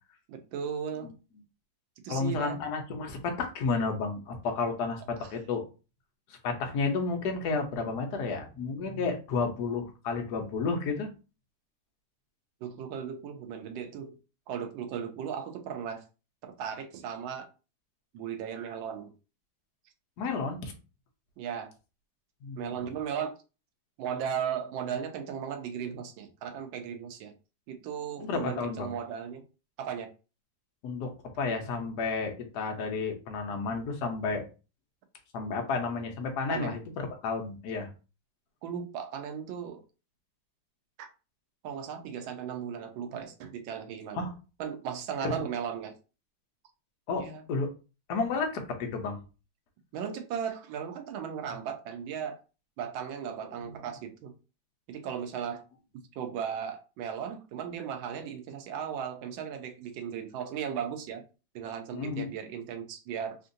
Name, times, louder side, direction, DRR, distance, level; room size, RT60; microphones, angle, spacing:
voice 1, 0.3-1.1 2.0-2.6 12.6-14.2 14.5-16.0 16.4-17.5 18.1-19.1 21.4-21.7 22.6-23.3 24.0-27.3 27.7-29.4 29.8-30.1 36.5-36.8 38.6-39.8 41.0-41.1 41.6-44.2 44.6-45.9 47.2-47.4 49.9-52.4 52.8-54.3 54.9-55.6 55.9-61.2 61.5-63.4, right 8 dB, 90° right, 1.4 m, -36 dB
voice 2, 2.1-5.6 6.3-11.1 20.2-20.7 22.4-22.8 28.2-28.9 30.8-34.4 35.3-37.9 44.1-44.3 45.2-45.3 47.1-47.7 48.1-49.2 53.6-53.8 61.9-62.3, left 4 dB, 65° left, 1.2 m, -32 dB
3.6 x 2.5 x 2.6 m
omnidirectional pair, 2.1 m